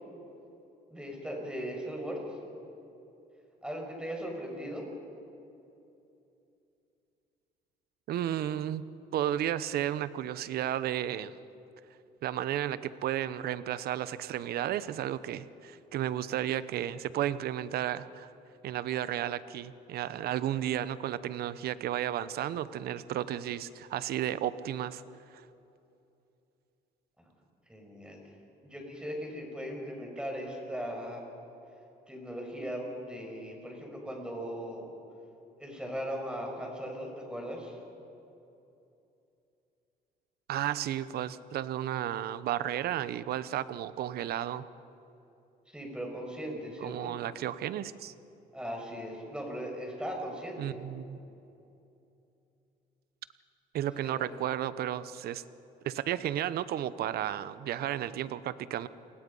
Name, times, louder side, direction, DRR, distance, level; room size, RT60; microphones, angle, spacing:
voice 1, 0.9-2.2 3.6-4.9 27.2-27.3 27.7-28.2 28.6-31.2 32.1-34.9 35.6-37.8 45.7-47.1 48.5-50.8 54.0-54.3, equal, 5° right, 0 dB, 5.7 m, -38 dB
voice 2, 8.1-11.3 12.2-18.3 18.6-25.0 40.5-44.6 46.8-48.1 50.6-51.2 53.7-55.4 55.8-58.9, right 11 dB, 65° right, 16 dB, 0.9 m, -33 dB
29.0 x 20.5 x 5.5 m, 2.8 s
cardioid pair, 110°, 17 cm